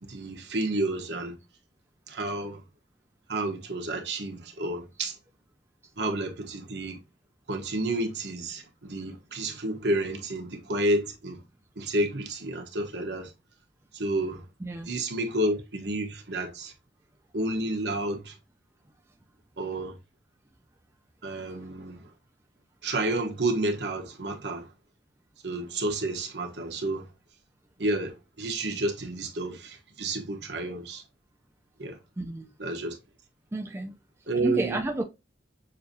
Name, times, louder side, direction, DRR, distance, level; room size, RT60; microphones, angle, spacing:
voice 1, 0.0-1.4 2.1-2.6 3.3-5.1 6.0-7.0 7.5-11.4 11.8-13.3 13.9-14.5 14.9-16.7 17.3-18.3 19.6-19.9 21.2-22.1 22.8-24.7 25.4-27.1 27.8-31.0 31.8-32.0 32.6-33.0 34.3-34.8, right 1 dB, 70° right, 1.1 m, -30 dB
voice 2, 14.6-14.9 32.2-32.5 33.5-33.9 34.4-35.0, right 2 dB, 15° right, 0.4 m, -30 dB
6.5 x 2.6 x 2.7 m
head